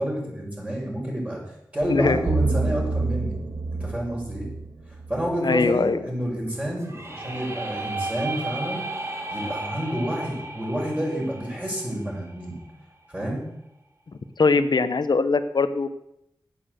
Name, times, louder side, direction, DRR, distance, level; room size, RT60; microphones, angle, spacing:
voice 1, 0.0-1.4 1.7-3.4 3.7-4.5 5.1-8.8 9.3-12.6 13.1-13.4, equal, 15° right, -3 dB, 5.6 m, -29 dB
sound 1, 1.8-5.9, right 3 dB, 80° right, 1.6 m, -28 dB
voice 2, 1.9-2.2 5.4-6.0 14.4-15.9, left 4 dB, 65° left, 11 dB, 0.9 m, -21 dB
sound 2, 6.8-12.7, right 2 dB, 35° right, 2.6 m, -34 dB
8.9 x 8.4 x 7.7 m, 0.82 s
wide cardioid pair, 60°, 8 cm